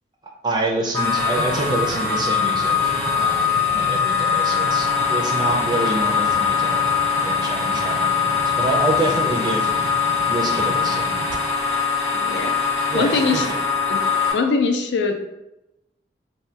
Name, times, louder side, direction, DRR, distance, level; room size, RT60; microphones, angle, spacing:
voice 1, 0.4-6.8 7.2-9.7 10.3-11.2 12.9-13.6, right 2 dB, 25° right, 0 dB, 0.4 m, -27 dB
sound 1, 0.9-14.3, left 6 dB, 15° left, 0.7 m, -22 dB
sound 2, 1.4-11.4, right 2 dB, 90° right, 0.4 m, -37 dB
voice 2, 12.1-12.5 12.9-13.5 13.9-14.1 14.3-15.1, left 4 dB, 80° left, 5 dB, 0.4 m, -21 dB
2.7 x 2.1 x 3.2 m, 0.91 s
head